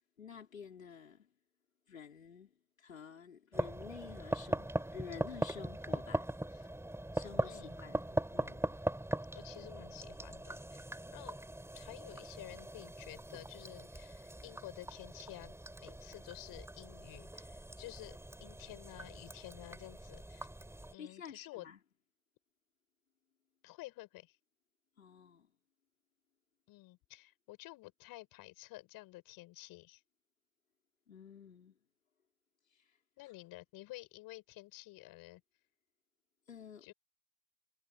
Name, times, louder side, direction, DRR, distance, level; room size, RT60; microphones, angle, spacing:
voice 1, 0.2-1.3 1.9-2.5 2.8-6.8 7.1-8.8 20.9-21.8 25.0-25.5 31.1-31.8 32.7-33.0 33.2-33.3 36.5-36.9, left 7 dB, 90° left, 5.0 m, -51 dB
sound 1, 3.5-20.9, right 1 dB, 5° right, 3.8 m, -40 dB
voice 2, 7.4-7.8 9.3-11.4 11.7-15.5 15.8-20.5 20.9-21.7 23.6-24.4 26.7-30.0 33.2-35.4 36.8-36.9, left 19 dB, 60° left, 6.9 m, -51 dB
figure-of-eight pair, 55°, 39 cm